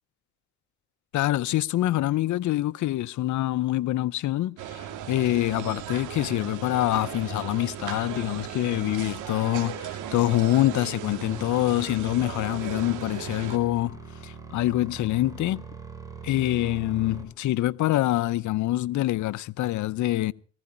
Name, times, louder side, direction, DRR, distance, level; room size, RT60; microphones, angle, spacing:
voice 1, 1.1-14.0 14.2-15.6 16.2-20.3, left 15 dB, 75° left, 0.7 m, -25 dB
sound 1, 4.6-13.6, right 10 dB, 85° right, 2.6 m, -37 dB
sound 2, 11.3-17.2, right 5 dB, 10° right, 4.6 m, -43 dB
19.5 x 15.5 x 4.3 m
cardioid pair, 90°, 30 cm